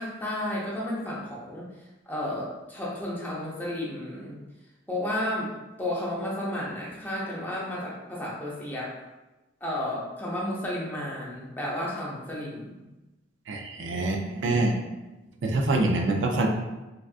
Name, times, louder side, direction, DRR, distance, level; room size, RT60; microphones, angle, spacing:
voice 1, 0.0-1.7 2.1-4.4 4.9-8.9 9.6-12.9 14.5-14.7, left 1 dB, 10° left, -5 dB, 0.6 m, -32 dB
voice 2, 13.5-14.7 15.4-16.5, right 2 dB, 75° right, 2 dB, 0.4 m, -25 dB
3.5 x 2.4 x 2.4 m, 1.1 s
head